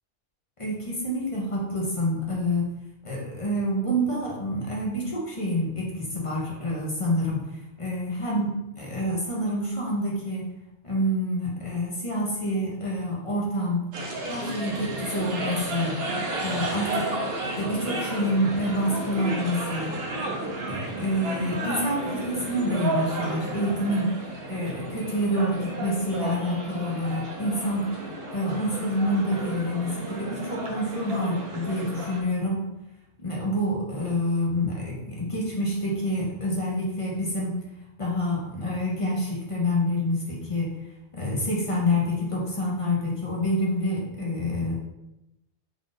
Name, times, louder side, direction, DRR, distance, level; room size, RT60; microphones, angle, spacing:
voice 1, 0.6-2.7 3.0-10.5 10.8-13.9 14.3-16.0 16.4-17.1 17.6-20.0 20.6-24.1 24.5-27.9 28.3-32.7 33.2-37.5 38.0-40.7 41.1-44.7, left 1 dB, 35° left, -3 dB, 0.5 m, -27 dB
sound 1, 13.9-32.2, right 2 dB, 55° right, 0.8 m, -32 dB
3.4 x 2.5 x 3.8 m, 0.92 s
omnidirectional pair, 1.4 m